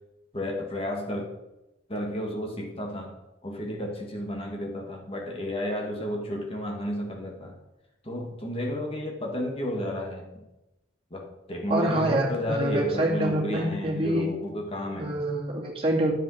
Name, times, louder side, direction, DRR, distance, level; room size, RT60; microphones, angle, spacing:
voice 1, 0.3-1.3 1.9-3.2 3.4-7.6 8.0-10.5 11.1-15.2, left 1 dB, 30° left, 0 dB, 2.3 m, -32 dB
voice 2, 11.7-14.3 15.0-16.1, right 1 dB, 30° right, -3 dB, 2.4 m, -26 dB
9.8 x 7.7 x 5.8 m, 0.95 s
head